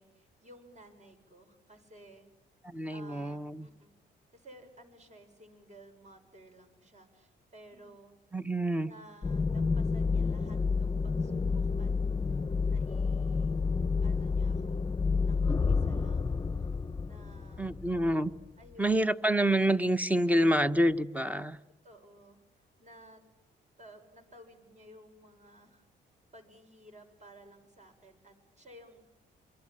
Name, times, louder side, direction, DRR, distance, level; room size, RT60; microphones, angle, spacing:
voice 1, 0.0-2.3 2.9-3.9 4.3-8.1 8.9-11.9 12.3-12.4 12.6-13.6 14.0-14.9 15.2-16.7 17.0-17.7 18.6-19.1 21.8-23.2 23.8-25.9 26.3-29.0, right 1 dB, 35° right, 5 dB, 7.0 m, -55 dB
voice 2, 2.6-3.7 8.3-8.9 17.6-18.3 18.8-21.6, right 1 dB, 5° right, 11 dB, 1.2 m, -27 dB
sound 1, 9.2-18.5, left 4 dB, 20° left, 1.0 m, -30 dB
26.0 x 24.0 x 8.9 m, 0.90 s
cardioid pair, 90°, 20 cm